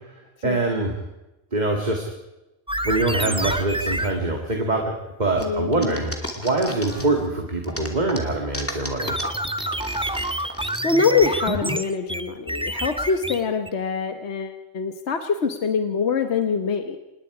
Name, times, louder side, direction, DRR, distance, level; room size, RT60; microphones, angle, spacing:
voice 1, 0.4-0.9 1.5-2.0 2.8-4.9 5.2-9.2, right 2 dB, 35° right, 2 dB, 2.2 m, -24 dB
sound 1, 2.7-4.2 9.0-13.7, right 1 dB, 10° right, 0.3 m, -28 dB
voice 2, 5.4-6.0 10.8-17.0, left 5 dB, 60° left, 7 dB, 1.4 m, -24 dB
sound 2, 5.4-7.3 7.6-10.8, left 1 dB, 10° left, 2.5 m, -33 dB
26.5 x 20.5 x 4.9 m, 0.96 s
omnidirectional pair, 1.3 m